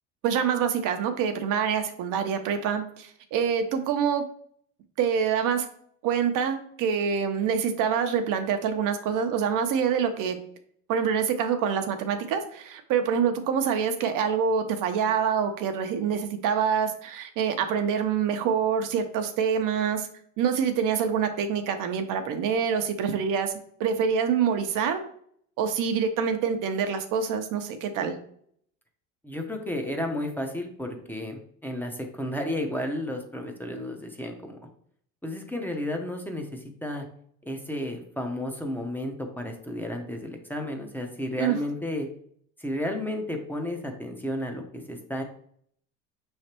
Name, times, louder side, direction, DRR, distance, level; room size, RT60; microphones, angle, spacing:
voice 1, 0.2-4.2 5.0-5.7 6.0-10.4 10.9-20.1 20.4-23.5 23.8-25.0 25.6-28.1 41.4-41.6, right 7 dB, 60° right, 7 dB, 0.7 m, -26 dB
voice 2, 29.2-34.6 35.2-37.1 37.4-42.1 42.6-45.2, left 1 dB, 5° left, 2 dB, 0.7 m, -32 dB
5.6 x 3.2 x 2.9 m, 0.63 s
supercardioid pair, 95°, 36 cm